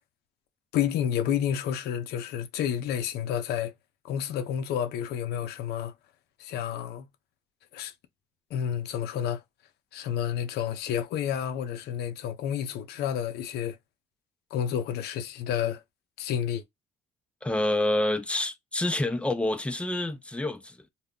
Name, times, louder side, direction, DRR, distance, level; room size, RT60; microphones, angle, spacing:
voice 1, 0.7-3.7 4.0-5.9 6.4-7.1 7.7-7.9 8.5-9.4 9.9-13.8 14.5-15.8 16.2-16.6, left 9 dB, 70° left, 0.5 m, -30 dB
voice 2, 17.4-20.8, left 1 dB, 5° left, 0.4 m, -27 dB
2.1 x 2.0 x 3.6 m
cardioid pair, 110°, 17 cm